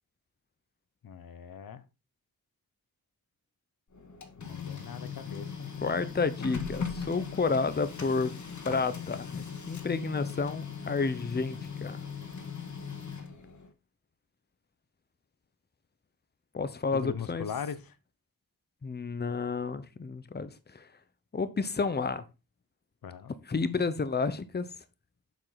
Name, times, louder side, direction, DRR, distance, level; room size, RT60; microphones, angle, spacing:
voice 1, 1.0-1.8 4.4-5.7 16.9-17.9 23.0-23.3, left 7 dB, 80° left, 1.0 m, -39 dB
Printer, 3.9-13.7, left 6 dB, 55° left, 1.8 m, -39 dB
voice 2, 5.8-8.3 8.6-12.0 16.5-17.5 18.8-20.9 21.3-22.2 23.5-24.7, left 4 dB, 30° left, 0.9 m, -31 dB
7.7 x 7.2 x 4.1 m
wide cardioid pair, 135°, 35 cm